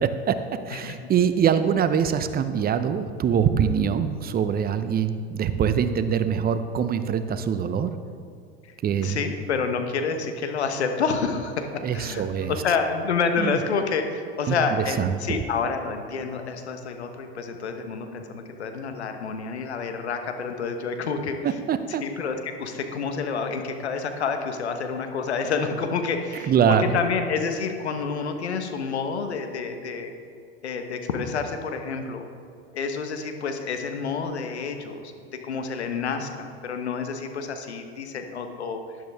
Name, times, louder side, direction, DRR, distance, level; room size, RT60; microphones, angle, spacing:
voice 1, 0.0-7.9 8.8-9.2 11.8-12.5 13.4-13.6 14.5-15.4 21.4-22.0 26.5-27.0, right 7 dB, 30° right, 11 dB, 0.7 m, -24 dB
voice 2, 9.0-11.7 11.9-21.3 22.0-30.1 30.6-32.3 32.7-35.1 35.4-38.8, left 5 dB, 85° left, 6 dB, 1.2 m, -28 dB
12.0 x 10.5 x 3.5 m, 2.5 s
hypercardioid pair, 85°, 32 cm